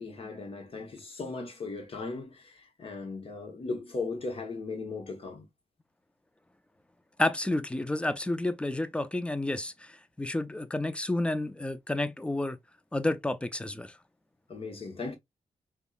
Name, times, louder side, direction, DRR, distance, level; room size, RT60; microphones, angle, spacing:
voice 1, 0.0-5.5 14.5-15.2, left 3 dB, 50° left, 1.1 m, -37 dB
voice 2, 7.2-12.6 12.9-13.9, left 1 dB, 10° left, 0.4 m, -30 dB
3.6 x 2.2 x 2.3 m
cardioid pair, 55°, 12 cm